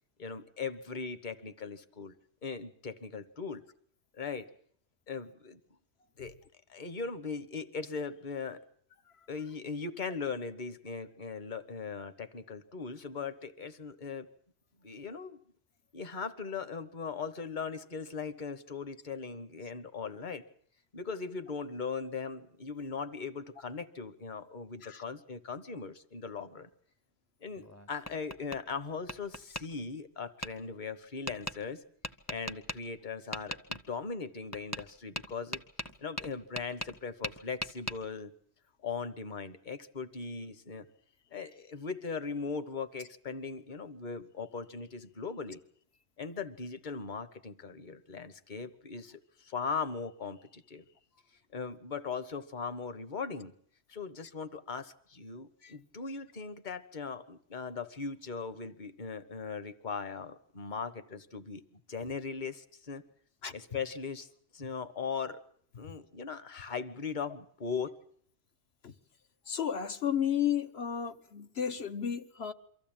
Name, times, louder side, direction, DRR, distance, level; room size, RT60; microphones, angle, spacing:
voice 1, 0.2-2.1 2.4-3.6 4.1-4.5 5.1-5.6 6.2-6.4 6.7-8.6 9.3-14.3 14.8-15.4 15.9-20.4 20.9-26.7 27.4-31.8 32.3-35.6 36.0-38.3 38.8-40.8 41.3-45.6 46.2-50.8 51.5-53.5 53.9-63.0 63.5-65.4 65.8-67.9, left 5 dB, 45° left, 1.3 m, -39 dB
Tap, 27.6-28.6 29.1-29.6 30.4-30.5 31.3-31.6 32.0-32.8 33.3-33.8 34.5-34.9 35.2-37.0 37.2-38.0, equal, 15° left, 0.8 m, -38 dB
voice 2, 69.5-72.5, left 9 dB, 65° left, 1.3 m, -33 dB
24.0 x 14.5 x 8.8 m
omnidirectional pair, 1.1 m